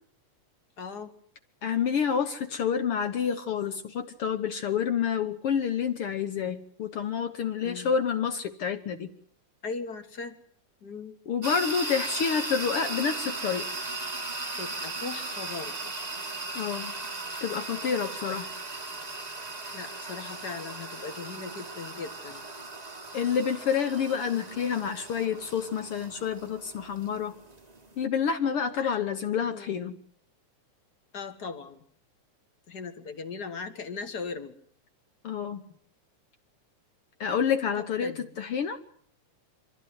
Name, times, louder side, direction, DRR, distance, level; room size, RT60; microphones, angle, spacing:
voice 1, 0.8-1.1 7.6-7.9 9.6-10.4 10.8-11.1 14.6-15.9 19.7-22.4 28.8-29.0 29.5-29.7 31.1-31.8 32.7-34.5 37.8-38.3, left 5 dB, 45° left, 9 dB, 1.5 m, -38 dB
voice 2, 1.6-9.1 11.3-13.7 16.5-16.9 17.4-18.5 23.1-27.3 28.0-30.0 35.2-35.6 37.2-38.8, left 7 dB, 60° left, 8 dB, 1.6 m, -28 dB
sound 1, 11.4-28.0, right 3 dB, 35° right, 0.6 m, -37 dB
25.0 x 14.5 x 9.6 m, 0.63 s
omnidirectional pair, 3.5 m